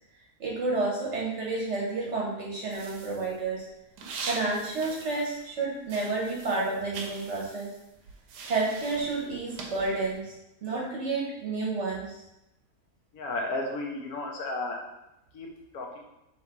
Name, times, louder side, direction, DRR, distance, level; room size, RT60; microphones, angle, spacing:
voice 1, 0.4-3.6 4.2-7.7 8.5-10.3 10.6-12.2, right 3 dB, 55° right, -3 dB, 0.9 m, -30 dB
sound 1, 2.7-5.6 5.8-10.2, right 4 dB, 85° right, 1.3 m, -42 dB
voice 2, 13.1-14.8 15.3-15.5 15.7-16.0, left 2 dB, 70° left, 0 dB, 1.2 m, -33 dB
3.7 x 3.0 x 4.6 m, 0.88 s
omnidirectional pair, 1.7 m